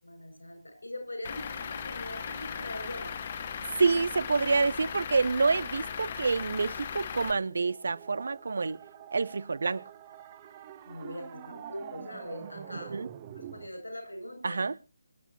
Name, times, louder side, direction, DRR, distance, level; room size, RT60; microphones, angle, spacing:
voice 1, 0.0-3.1 10.9-13.0 13.4-14.6, left 1 dB, 75° left, 7.8 m, -41 dB
Truck / Idling, 1.2-7.3, left 7 dB, 35° left, 1.2 m, -38 dB
voice 2, 3.8-8.8 9.1-9.8 12.7-13.1 14.4-14.8, right 4 dB, 55° right, 0.6 m, -27 dB
sound 1, 7.4-13.7, right 10 dB, 25° right, 1.2 m, -46 dB
26.0 x 10.0 x 3.0 m
figure-of-eight pair, 150°, 0 cm